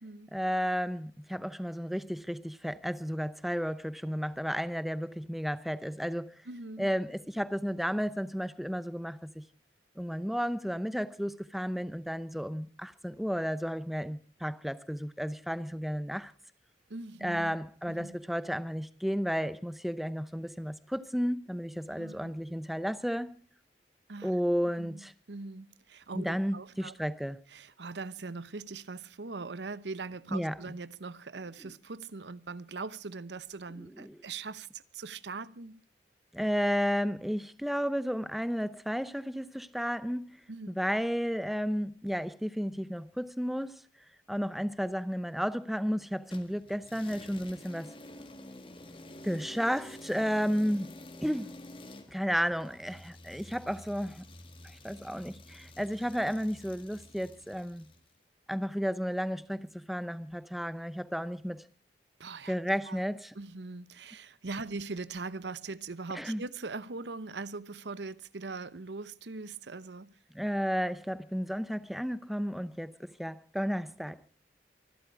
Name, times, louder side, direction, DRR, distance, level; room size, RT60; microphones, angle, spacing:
voice 1, 0.3-6.3 6.8-9.4 10.0-16.3 17.2-23.4 24.2-25.1 26.1-27.4 30.3-30.6 31.6-31.7 33.8-34.2 36.3-40.4 40.7-43.8 44.3-47.9 49.2-51.5 52.1-54.2 54.6-57.9 58.5-61.6 62.5-63.3 66.1-66.4 70.3-74.3, equal, ahead, 0.7 m, -33 dB
voice 2, 6.5-6.9 16.9-17.5 17.9-18.2 21.9-22.3 24.1-24.3 24.8-26.9 27.5-35.8 40.5-40.7 62.2-62.6 62.9-63.0 63.3-70.1, right 3 dB, 90° right, 0.9 m, -41 dB
sound 1, 46.3-58.1, left 1 dB, 30° left, 1.9 m, -49 dB
25.0 x 12.0 x 4.7 m
head